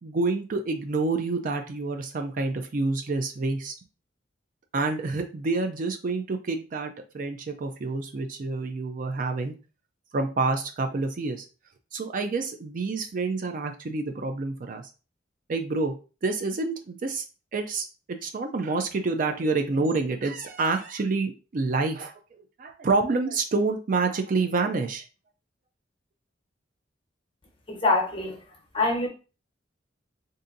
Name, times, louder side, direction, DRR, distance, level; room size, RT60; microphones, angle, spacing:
voice 1, 0.0-3.7 4.7-9.5 10.1-11.5 11.9-14.8 15.5-15.9 16.2-17.2 17.5-17.9 18.2-22.1 22.6-25.0, right 3 dB, 45° right, 0.4 m, -28 dB
voice 2, 27.7-28.4 28.7-29.1, left 3 dB, 30° left, 1.0 m, -24 dB
3.9 x 2.6 x 2.5 m
head